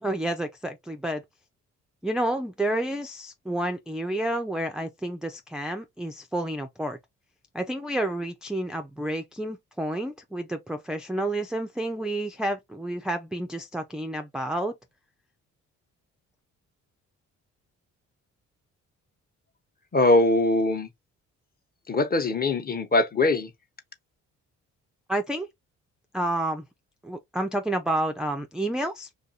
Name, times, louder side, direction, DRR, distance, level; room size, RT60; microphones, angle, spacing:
voice 1, 0.0-1.2 2.0-7.0 7.5-14.7 25.1-25.5 26.1-26.6 27.0-29.1, right 1 dB, ahead, 0.4 m, -30 dB
voice 2, 19.9-20.9 21.9-23.5, left 2 dB, 30° left, 1.0 m, -22 dB
2.6 x 2.3 x 4.1 m
cardioid pair, 90°, 30 cm